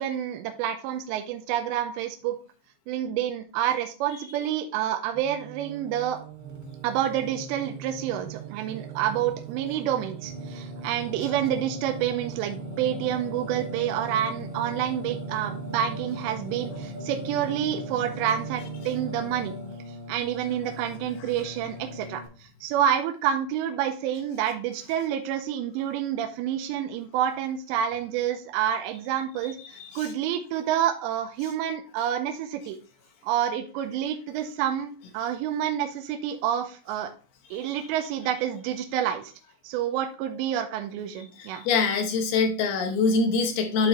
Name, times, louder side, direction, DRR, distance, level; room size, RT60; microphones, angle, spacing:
voice 1, 0.0-2.4 2.9-6.2 6.8-19.6 20.1-32.8 33.2-37.1 37.5-39.3 39.6-41.6, right 10 dB, 85° right, 5 dB, 2.9 m, -28 dB
Singing, 5.1-22.3, right 2 dB, 50° right, 1.4 m, -38 dB
voice 2, 29.7-30.1 41.4-43.9, left 4 dB, 75° left, 4 dB, 2.7 m, -24 dB
11.5 x 4.0 x 3.0 m, 0.38 s
omnidirectional pair, 5.2 m